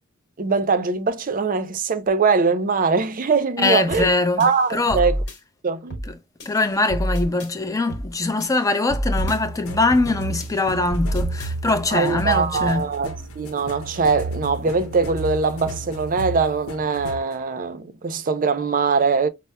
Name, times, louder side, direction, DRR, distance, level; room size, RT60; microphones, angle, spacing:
voice 1, 0.4-4.1 4.4-5.1 5.6-6.0 11.9-19.3, right 4 dB, 40° right, 0.5 m, -22 dB
voice 2, 3.6-5.1 6.0-6.2 6.5-12.9, left 2 dB, 15° left, 0.5 m, -22 dB
sound 1, 3.9-4.1 4.4-5.4 5.9-6.1 6.4-7.5 7.9-8.1 8.4-9.4 9.9-10.1 10.4-11.5, equal, 55° left, 1.2 m, -28 dB
sound 2, 9.2-17.4, right 2 dB, 85° left, 0.8 m, -32 dB
5.4 x 2.0 x 2.2 m
head